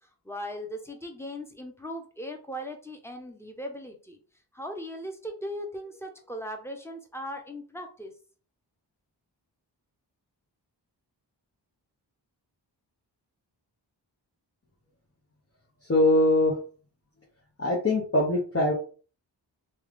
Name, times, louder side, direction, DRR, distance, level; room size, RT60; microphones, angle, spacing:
voice 1, 0.2-4.2 4.5-8.2, equal, 5° left, 4 dB, 1.0 m, -38 dB
voice 2, 15.9-16.6 17.6-18.7, left 1 dB, 30° left, -3 dB, 1.0 m, -22 dB
3.1 x 2.5 x 3.6 m, 0.38 s
cardioid pair, 40°, 43 cm